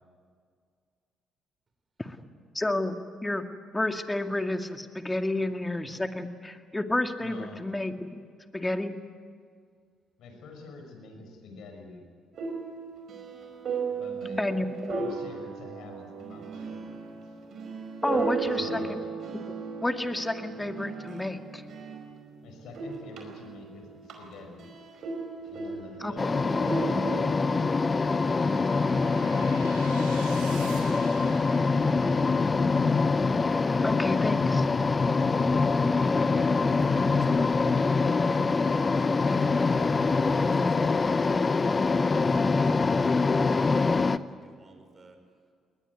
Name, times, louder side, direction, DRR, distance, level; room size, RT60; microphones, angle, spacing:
voice 1, 2.5-3.5 3.7-8.1 8.5-9.0 14.4-15.0 18.0-19.0 19.5-19.6 19.8-21.6 26.0-26.6 33.8-34.6, left 2 dB, 15° left, 6 dB, 2.2 m, -30 dB
voice 2, 7.2-7.7 10.2-12.1 13.8-14.4 15.0-17.4 18.4-19.1 22.4-24.7 25.5-26.6 30.0-30.7 35.1-35.5, left 3 dB, 70° left, 4 dB, 5.7 m, -47 dB
sound 1, 12.3-22.4 22.7-27.8, right 4 dB, 60° right, 4.8 m, -36 dB
sound 2, 25.4-32.7, right 5 dB, 90° right, 3.5 m, -47 dB
sound 3, 26.2-44.2, left 4 dB, 35° left, 0.9 m, -24 dB
voice 3, 35.9-45.2, right 3 dB, 35° right, 5 dB, 5.4 m, -52 dB
21.0 x 20.5 x 9.6 m, 2.1 s
hypercardioid pair, 55°, 0 cm